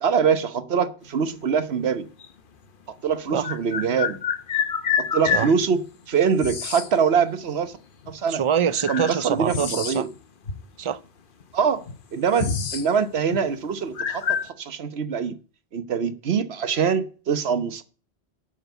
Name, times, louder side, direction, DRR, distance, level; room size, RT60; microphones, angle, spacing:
voice 1, 0.0-2.1 3.0-4.2 5.1-7.7 8.1-8.4 8.9-10.1 11.5-11.8 12.1-15.3 15.7-17.8, right 6 dB, 75° right, 1.2 m, -24 dB
sound 1, 2.2-2.3 3.4-5.5 6.4-6.9 8.0-8.1 8.7-10.2 10.4-10.6 11.4-11.5 11.8-12.9 13.2-13.4 13.9-14.5, left 7 dB, 55° left, 1.0 m, -27 dB
voice 2, 8.3-10.1 10.8-11.0, right 8 dB, 40° right, 0.4 m, -24 dB
8.1 x 6.4 x 7.9 m
omnidirectional pair, 1.1 m